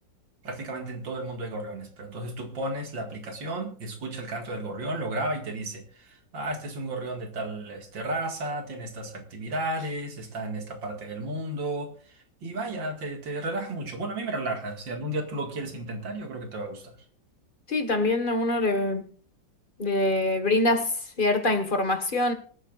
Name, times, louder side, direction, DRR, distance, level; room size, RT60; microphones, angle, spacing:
voice 1, 0.4-16.9, right 2 dB, 80° right, 2.8 m, -33 dB
voice 2, 17.7-19.1 19.8-22.3, left 2 dB, 30° left, 1.6 m, -24 dB
25.5 x 9.0 x 2.5 m
omnidirectional pair, 2.0 m